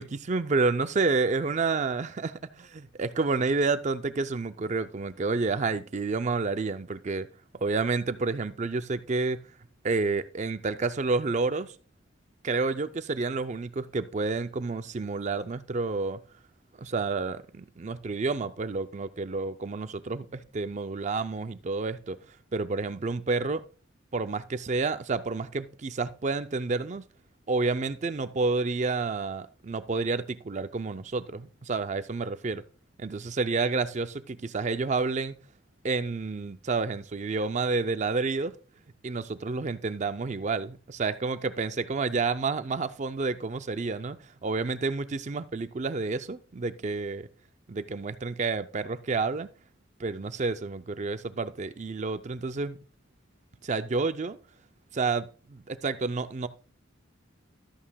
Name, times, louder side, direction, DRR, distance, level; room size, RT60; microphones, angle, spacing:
voice 1, 0.0-7.3 7.6-9.4 9.8-11.7 12.4-16.2 16.8-22.2 22.5-23.6 24.1-27.1 27.5-32.6 33.0-35.4 35.8-38.5 39.0-47.3 47.7-49.5 50.0-52.8 53.6-54.4 54.9-56.5, right 4 dB, 35° right, 0.4 m, -29 dB
13.0 x 8.6 x 2.3 m
head